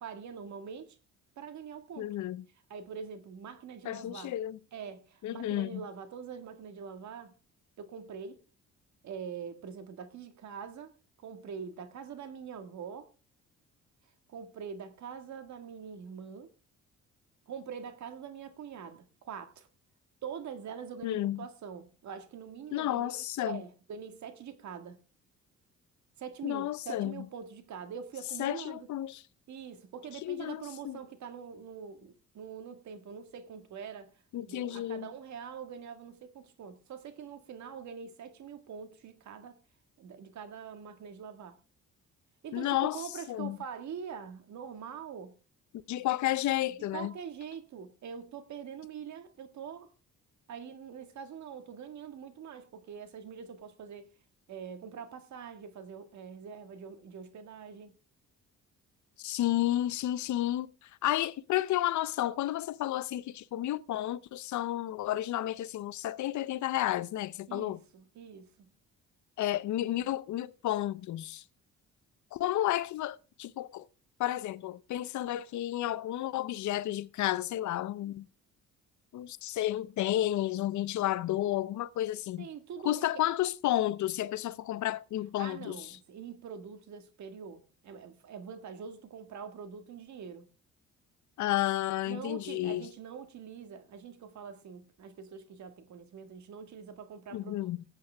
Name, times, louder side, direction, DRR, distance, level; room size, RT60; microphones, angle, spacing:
voice 1, 0.0-1.0 1.4-2.2 2.7-4.3 4.7-7.4 7.8-8.4 9.0-10.9 11.2-13.1 14.3-16.5 17.5-19.7 20.2-25.0 26.2-28.9 29.5-34.2 34.5-39.6 40.0-41.6 42.4-45.3 46.9-49.9 50.5-54.1 54.5-58.0 67.5-68.7 82.4-83.2 85.4-90.5 92.1-97.7, right 7 dB, 70° right, 1.7 m, -44 dB
voice 2, 2.0-2.4 3.8-4.6 5.2-5.8 21.0-21.5 22.7-23.6 26.4-27.2 28.4-29.2 30.2-31.0 34.3-35.1 42.5-43.6 45.9-47.1 59.2-67.8 69.4-71.4 72.3-73.9 74.2-78.3 79.1-82.5 82.8-85.9 91.4-92.9 97.3-97.8, left 14 dB, 70° left, 0.6 m, -32 dB
17.0 x 8.2 x 3.4 m
cardioid pair, 90°, 30 cm